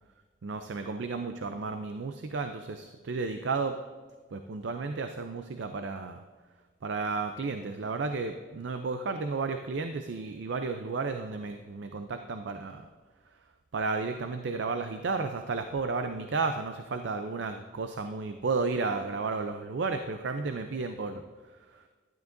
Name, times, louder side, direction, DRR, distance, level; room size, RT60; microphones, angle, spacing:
voice 1, 0.4-3.7 4.3-6.2 6.8-12.8 13.7-21.2 21.7-21.8, right 4 dB, 65° right, 7 dB, 0.4 m, -33 dB
12.0 x 10.5 x 2.6 m, 1.4 s
head